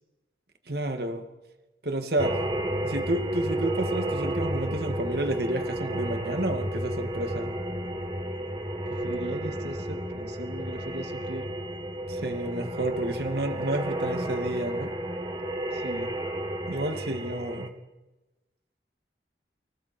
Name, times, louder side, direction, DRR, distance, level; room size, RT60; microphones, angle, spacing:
voice 1, 0.7-1.2 1.8-2.4 2.8-7.5 12.1-14.9 16.7-17.7, right 1 dB, 60° right, 6 dB, 2.3 m, -30 dB
sound 1, 2.2-17.7, right 1 dB, 25° right, 1.9 m, -32 dB
voice 2, 8.9-11.5 15.7-16.1, right 1 dB, 75° right, 5 dB, 2.1 m, -39 dB
29.0 x 25.5 x 4.6 m, 1.1 s
head